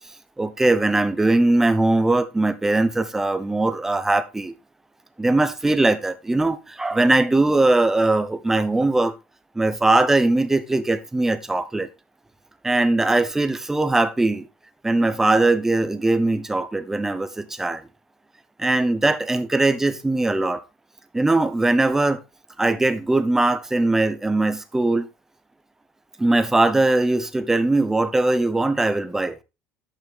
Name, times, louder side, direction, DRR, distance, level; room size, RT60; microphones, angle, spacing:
voice 1, 0.4-4.5 5.2-9.1 9.5-11.9 12.6-14.5 14.8-17.8 18.6-20.6 21.1-22.2 22.6-25.1 26.2-29.4, right 2 dB, 10° right, 0.8 m, -20 dB
11.0 x 6.3 x 3.5 m
cardioid pair, 135°, 5 cm